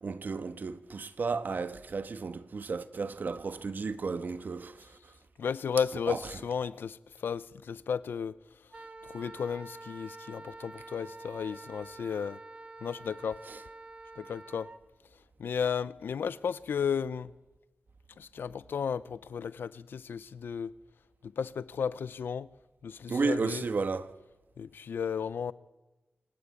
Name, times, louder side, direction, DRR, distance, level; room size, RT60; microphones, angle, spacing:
voice 1, 0.0-5.0 6.1-6.2 13.5-13.6 23.1-24.2, right 4 dB, 65° right, 1.5 m, -33 dB
voice 2, 5.4-8.3 9.1-12.4 12.8-13.4 14.2-14.7 15.4-17.3 18.2-20.7 21.2-22.5 22.8-23.7 24.6-25.5, left 7 dB, 85° left, 0.8 m, -34 dB
Wind instrument woodwind instrument, 8.7-14.8, right 2 dB, 35° right, 1.7 m, -47 dB
26.5 x 25.5 x 8.6 m
cardioid pair, 60°, 3 cm